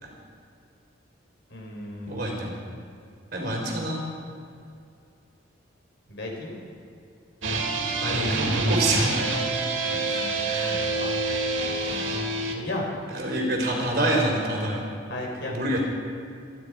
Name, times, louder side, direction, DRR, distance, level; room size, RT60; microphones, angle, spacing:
voice 1, 1.5-2.2 6.1-6.5 10.9-11.3 11.8-12.2 12.5-12.9 15.1-15.6, left 1 dB, 65° left, -1 dB, 4.3 m, -35 dB
voice 2, 2.1-2.6 3.3-4.0 8.0-9.3 10.1-10.8 11.3-11.4 13.1-14.8 15.5-15.8, right 1 dB, 50° right, -1 dB, 4.1 m, -27 dB
sound 1, 7.4-12.5, right 3 dB, 85° right, 2.3 m, -26 dB
25.5 x 10.5 x 5.0 m, 2.5 s
head